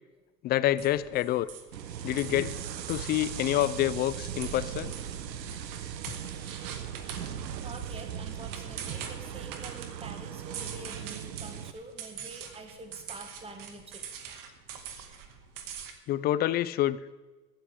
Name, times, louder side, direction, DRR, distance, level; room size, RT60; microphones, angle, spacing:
voice 1, 0.4-1.5 2.0-2.6 2.9-4.9 16.1-17.0, left 13 dB, 25° left, 17 dB, 0.3 m, -27 dB
sound 1, 0.8-15.9, right 7 dB, 40° right, 2.1 m, -44 dB
sound 2, 1.7-11.7, right 9 dB, 90° right, 0.9 m, -39 dB
voice 2, 7.3-14.0, right 2 dB, 10° right, 5 dB, 1.9 m, -46 dB
16.5 x 13.0 x 3.6 m, 1.2 s
hypercardioid pair, 90°, 48 cm